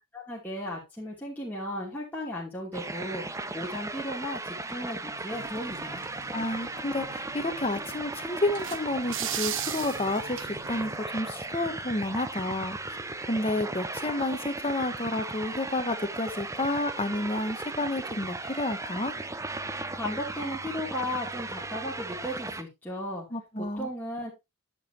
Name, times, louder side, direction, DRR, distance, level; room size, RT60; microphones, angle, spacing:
voice 1, 0.1-3.2 3.5-6.0 19.9-23.2 23.8-24.3, left 1 dB, 10° left, 2.7 m, -35 dB
sound 1, 2.7-22.6, right 2 dB, 15° right, 0.6 m, -37 dB
sound 2, 5.3-11.0, right 10 dB, 60° right, 0.8 m, -39 dB
voice 2, 6.3-13.0 13.3-19.1 23.3-23.9, left 2 dB, 25° left, 1.2 m, -30 dB
10.5 x 7.2 x 2.8 m
head